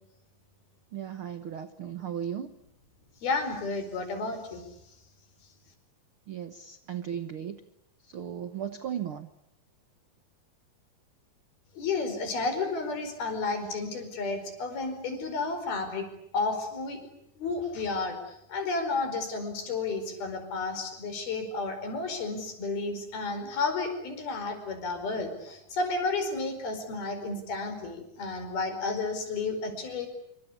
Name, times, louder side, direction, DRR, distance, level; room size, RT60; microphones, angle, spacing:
voice 1, 0.9-2.5 6.3-7.6 8.1-9.3, right 9 dB, 85° right, 11 dB, 1.1 m, -36 dB
voice 2, 3.2-4.7 11.8-16.1 16.3-17.0 17.4-18.2 18.5-30.1, left 3 dB, 75° left, 7 dB, 6.7 m, -32 dB
27.0 x 25.0 x 8.5 m, 0.78 s
omnidirectional pair, 4.3 m